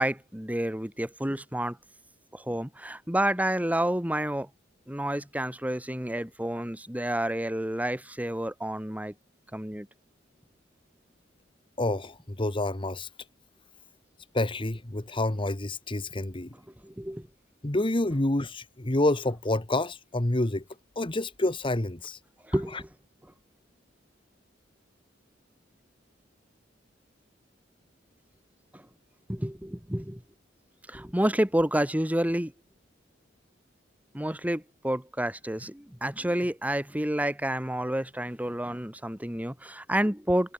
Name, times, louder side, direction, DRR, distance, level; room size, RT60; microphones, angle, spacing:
voice 1, 0.0-1.8 2.3-4.5 4.9-9.1 9.5-9.9 16.8-17.3 22.5-22.9 28.7-28.8 29.3-30.2 30.9-32.5 34.1-40.5, right 1 dB, 10° right, 2.1 m, -29 dB
voice 2, 11.8-13.1 14.3-16.5 17.6-20.6 20.9-22.2 22.7-22.8, left 2 dB, 25° left, 1.3 m, -28 dB
head